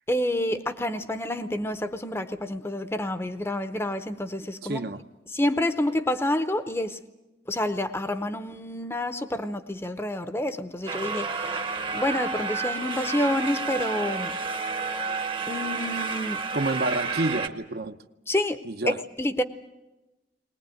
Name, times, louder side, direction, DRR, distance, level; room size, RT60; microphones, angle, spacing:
voice 1, 0.1-4.8 5.3-7.0 7.5-14.3 15.5-16.4 18.3-19.4, left 1 dB, 15° left, 11 dB, 0.7 m, -28 dB
voice 2, 4.6-5.0 16.5-18.0 18.6-19.0, right 2 dB, 60° right, 9 dB, 0.8 m, -28 dB
sound 1, 10.9-17.5, right 4 dB, 30° right, 0.9 m, -30 dB
20.5 x 20.0 x 9.2 m, 1.1 s
head